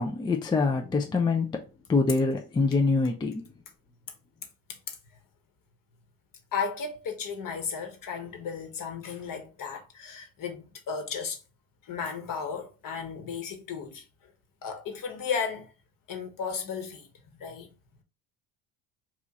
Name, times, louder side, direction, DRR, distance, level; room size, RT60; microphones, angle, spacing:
voice 1, 0.0-1.6 1.9-3.4, left 4 dB, 10° left, 0.3 m, -25 dB
voice 2, 6.5-11.4 11.9-14.0 14.6-15.7 16.1-17.1 17.4-17.7, left 6 dB, 45° left, 1.2 m, -34 dB
3.0 x 2.4 x 3.5 m
hypercardioid pair, 80°, 45 cm